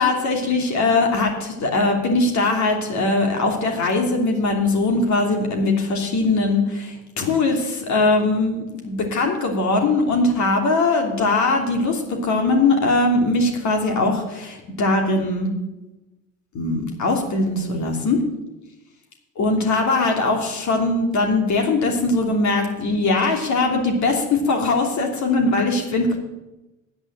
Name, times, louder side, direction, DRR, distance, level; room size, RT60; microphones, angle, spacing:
voice 1, 0.0-15.5 16.5-18.2 19.4-26.2, left 3 dB, 45° left, 3 dB, 3.0 m, -21 dB
9.9 x 9.2 x 7.5 m, 0.99 s
hypercardioid pair, 70°, 39 cm